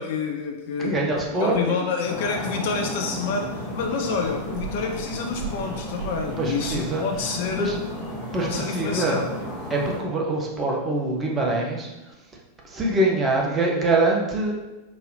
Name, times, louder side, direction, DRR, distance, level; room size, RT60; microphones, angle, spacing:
voice 1, 0.0-1.0 1.4-7.8 8.4-9.3, left 5 dB, 50° left, 3 dB, 0.4 m, -28 dB
voice 2, 0.8-1.9 6.4-7.0 7.6-7.8 8.3-9.2 9.7-11.9 12.6-14.6, right 2 dB, 20° right, -1 dB, 0.7 m, -24 dB
sound 1, 2.0-10.0, right 1 dB, 40° right, 1.4 m, -33 dB
4.0 x 2.6 x 2.7 m, 1.1 s
figure-of-eight pair, 90°, 0 cm